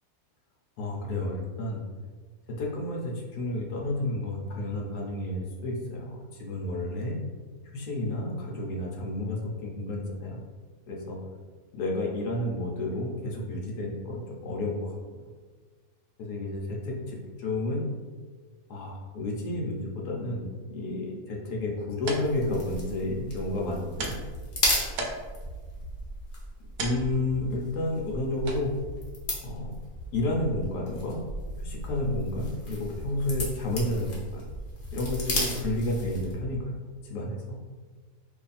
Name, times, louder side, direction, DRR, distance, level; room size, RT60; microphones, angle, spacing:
voice 1, 0.8-1.8 2.5-7.2 7.6-10.4 10.9-11.2 11.7-15.2 16.2-17.8 18.7-24.1 26.8-28.7 29.4-29.8 30.1-31.3 31.6-34.4 34.9-36.7 37.0-37.6, left 1 dB, 80° left, -2 dB, 1.2 m, -31 dB
sound 1, 21.6-30.9, right 2 dB, 75° right, 1.1 m, -42 dB
sound 2, 22.0-36.4, left 1 dB, 50° left, 1.0 m, -35 dB
sound 3, 24.3-24.5 25.4-26.0 26.9-27.5 28.4-29.0 29.9-30.5 31.4-32.0 32.9-33.5 34.4-35.0 35.9-36.5 37.4-37.5, right 1 dB, 50° right, 0.9 m, -43 dB
3.1 x 2.5 x 4.0 m, 1.4 s
omnidirectional pair, 1.7 m